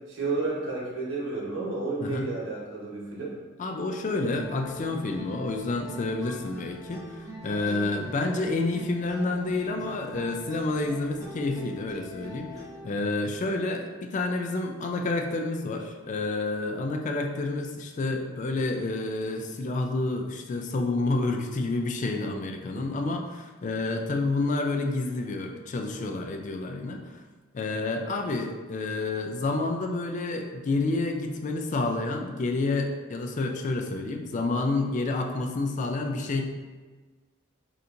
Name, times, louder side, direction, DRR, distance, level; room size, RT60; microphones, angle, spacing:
voice 1, 0.1-3.4 22.7-22.8, right 3 dB, 80° right, -5 dB, 1.1 m, -31 dB
voice 2, 3.6-27.1 27.5-36.5, left 2 dB, 40° left, 4 dB, 0.3 m, -29 dB
sound 1, 4.3-12.9, equal, 15° right, 0.7 m, -43 dB
4.3 x 2.5 x 2.6 m, 1.3 s
head